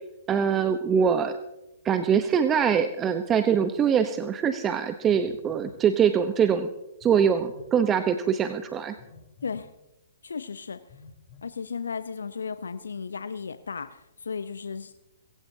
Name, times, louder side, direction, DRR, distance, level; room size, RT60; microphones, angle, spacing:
voice 1, 0.3-1.4 1.8-6.7 7.0-8.9, right 7 dB, 20° right, 9 dB, 0.9 m, -23 dB
Telephone, 5.1-5.8 7.0-7.7 9.0-9.7 10.9-11.4, left 4 dB, 35° left, 3.2 m, -49 dB
voice 2, 10.2-10.8 11.4-14.9, left 5 dB, 75° left, 12 dB, 0.7 m, -35 dB
23.0 x 15.5 x 2.8 m, 0.93 s
figure-of-eight pair, 120°, 0 cm